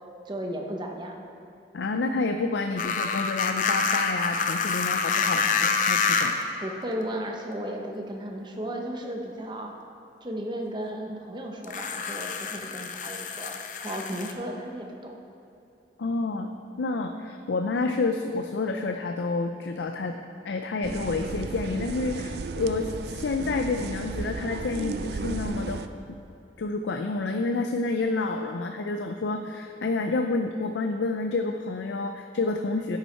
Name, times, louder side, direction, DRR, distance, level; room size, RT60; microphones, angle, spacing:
voice 1, 0.2-1.2 6.6-9.8 10.2-15.1, equal, 25° right, 2 dB, 0.9 m, -34 dB
voice 2, 1.7-6.4 16.0-16.5 16.8-20.2 20.4-25.8 26.1-26.2 26.6-33.0, left 3 dB, 85° left, 5 dB, 0.5 m, -29 dB
sound 1, 2.8-6.5 7.5-7.6 11.6-14.3, left 5 dB, 45° left, 0.6 m, -27 dB
sound 2, 20.8-25.9, right 4 dB, 65° right, 0.4 m, -34 dB
11.0 x 8.2 x 4.4 m, 2.6 s
head